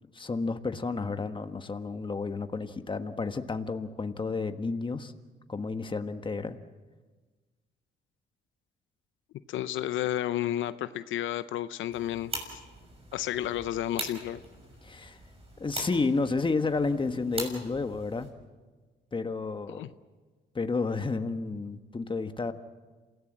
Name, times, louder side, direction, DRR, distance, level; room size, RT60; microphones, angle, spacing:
voice 1, 0.1-5.1 5.5-6.6 14.8-15.2 15.6-18.3 19.1-19.9 20.5-22.5, left 4 dB, 25° left, 8 dB, 1.5 m, -31 dB
voice 2, 9.5-12.6 13.1-14.4 19.7-19.9, left 12 dB, 80° left, 13 dB, 0.7 m, -32 dB
sound 1, 11.9-18.3, right 2 dB, 30° right, 6.3 m, -42 dB
27.5 x 17.5 x 7.5 m, 1.3 s
cardioid pair, 90°, 20 cm